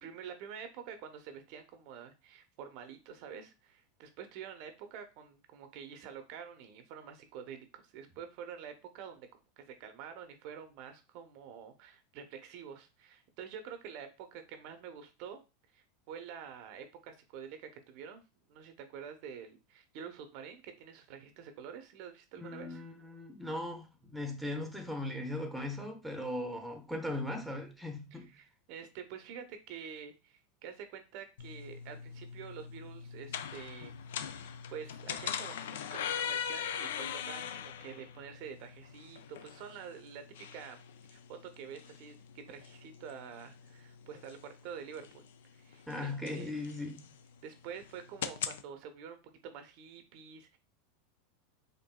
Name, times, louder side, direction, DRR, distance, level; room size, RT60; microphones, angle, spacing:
voice 1, 0.0-9.3 9.6-15.4 15.7-18.2 18.5-22.8 28.1-34.0 34.4-40.8 41.1-45.2 45.5-46.5 47.4-50.6, right 7 dB, 55° right, 0.6 m, -47 dB
voice 2, 22.4-28.3 45.9-47.0, left 1 dB, ahead, 0.8 m, -38 dB
sound 1, 31.4-48.6, left 8 dB, 75° left, 0.3 m, -42 dB
4.4 x 2.5 x 2.2 m
hypercardioid pair, 95°, 0 cm